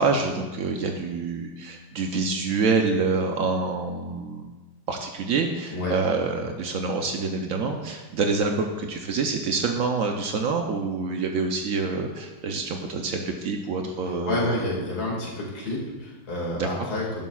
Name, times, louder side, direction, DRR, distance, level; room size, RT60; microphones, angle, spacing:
voice 1, 0.0-4.5 4.9-14.4 16.6-16.7, right 4 dB, 85° right, 3 dB, 0.7 m, -26 dB
voice 2, 14.3-17.2, left 1 dB, 45° left, -3 dB, 2.6 m, -29 dB
12.0 x 11.0 x 2.4 m, 1.2 s
omnidirectional pair, 2.3 m